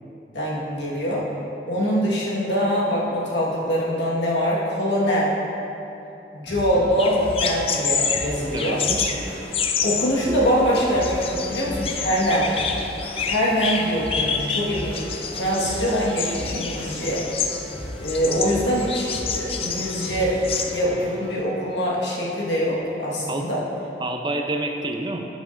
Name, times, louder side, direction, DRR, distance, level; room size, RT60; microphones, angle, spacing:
voice 1, 0.3-1.3 1.7-5.3 6.3-8.8 9.8-12.5 13.2-17.3 18.0-23.6, equal, 85° left, -5 dB, 1.5 m, -23 dB
sound 1, 6.5-21.4, equal, 10° left, 1.7 m, -38 dB
sound 2, 7.0-20.7, left 5 dB, 35° left, 0.4 m, -28 dB
voice 2, 8.5-9.2 23.3-23.5 24.0-25.2, right 2 dB, 25° right, 3 dB, 0.5 m, -28 dB
9.8 x 7.1 x 2.6 m, 2.9 s
head